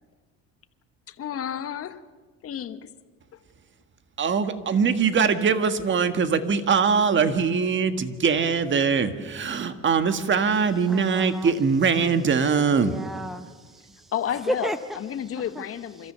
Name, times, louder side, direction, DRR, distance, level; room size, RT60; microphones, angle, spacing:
voice 1, 1.1-2.0 2.4-2.9 14.1-16.1, left 9 dB, 50° left, 11 dB, 1.3 m, -31 dB
voice 2, 4.2-12.9, right 5 dB, 40° right, 9 dB, 1.6 m, -22 dB
voice 3, 10.9-11.5 12.8-14.1 14.5-14.8, equal, ahead, 9 dB, 0.8 m, -32 dB
28.5 x 13.5 x 6.9 m, 1.4 s
supercardioid pair, 85°, 31 cm